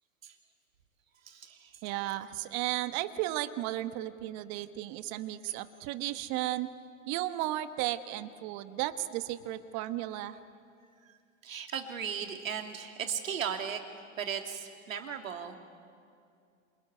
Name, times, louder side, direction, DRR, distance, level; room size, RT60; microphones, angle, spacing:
voice 1, 1.3-1.7 11.4-13.8 14.2-15.6, right 7 dB, 80° right, 5 dB, 2.9 m, -36 dB
voice 2, 1.8-6.7 7.1-10.4, right 15 dB, 45° right, 11 dB, 1.3 m, -34 dB
26.5 x 22.5 x 9.7 m, 2.4 s
hypercardioid pair, 115°, 39 cm